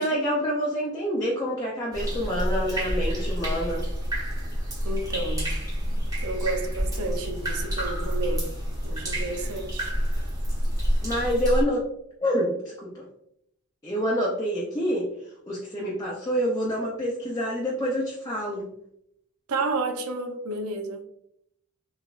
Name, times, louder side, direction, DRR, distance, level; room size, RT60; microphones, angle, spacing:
voice 1, 0.0-3.9 11.0-11.9 12.2-13.0 13.8-15.1 15.4-18.7, equal, 15° left, 0.5 m, -27 dB
sound 1, 1.9-11.6, equal, 15° right, 1.0 m, -28 dB
voice 2, 4.8-5.5 6.2-8.5 8.8-9.9 19.5-21.0, right 3 dB, 90° right, 0.6 m, -31 dB
4.0 x 3.3 x 2.4 m
head